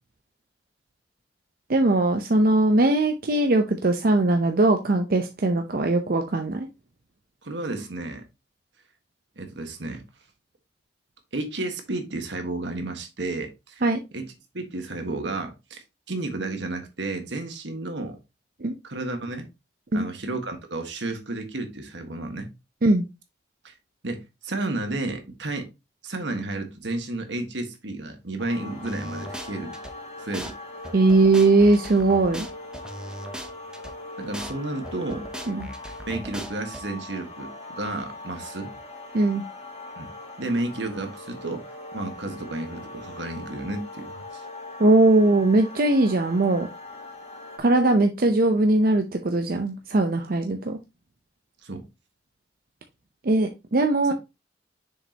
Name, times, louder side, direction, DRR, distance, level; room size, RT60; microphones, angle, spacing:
voice 1, 1.7-6.7 13.8-14.0 18.6-18.7 19.9-20.1 22.8-23.0 30.9-32.5 35.5-35.7 39.1-39.4 44.8-46.7 47.6-50.8 53.2-54.1, right 2 dB, 55° right, 0.6 m, -20 dB
voice 2, 7.4-8.2 9.4-10.0 11.3-13.8 14.1-18.2 18.8-19.5 19.9-22.5 23.6-23.7 24.0-25.7 26.0-29.7 30.2-30.5 34.2-35.3 36.1-38.7 40.0-40.1 40.4-41.6 41.9-44.4 51.6-51.8, right 2 dB, 80° right, 1.5 m, -32 dB
sound 1, 28.4-47.6, left 2 dB, 40° left, 1.9 m, -41 dB
sound 2, 28.9-29.9 30.3-30.5 30.8-33.9 34.3-34.5 34.8-36.8, right 1 dB, 5° right, 0.6 m, -38 dB
6.6 x 5.2 x 2.8 m
head